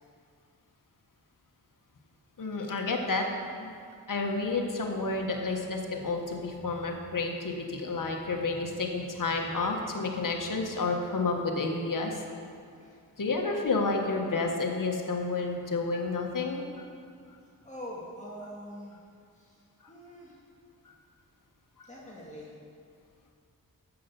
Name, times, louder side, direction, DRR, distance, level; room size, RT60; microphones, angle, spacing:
voice 1, 2.4-3.3 3.6-3.7 4.1-12.2 13.2-16.7 21.8-21.9, left 3 dB, 60° left, 2 dB, 1.5 m, -30 dB
voice 2, 17.6-19.0 19.4-19.5 19.9-20.3 21.9-22.5, equal, 20° left, -6 dB, 2.1 m, -43 dB
8.3 x 7.1 x 7.0 m, 2.3 s
cardioid pair, 50°, 36 cm